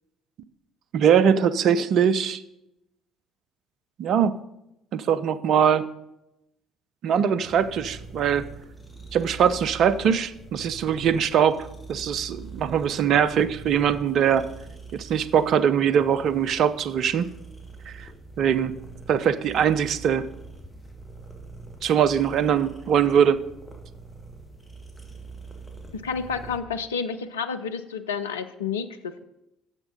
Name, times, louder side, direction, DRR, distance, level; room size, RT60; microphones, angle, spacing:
voice 1, 0.9-2.4 4.0-4.3 4.9-5.8 7.0-8.5 9.1-14.4 14.9-17.3 17.9-18.1 18.4-18.7 19.1-20.3 21.8-23.4, right 8 dB, 50° right, 13 dB, 0.5 m, -22 dB
sound 1, 7.4-26.6, right 3 dB, 5° left, 1.9 m, -43 dB
voice 2, 25.9-29.2, left 6 dB, 75° left, 8 dB, 0.4 m, -30 dB
8.0 x 7.2 x 5.4 m, 0.87 s
figure-of-eight pair, 50°, 0 cm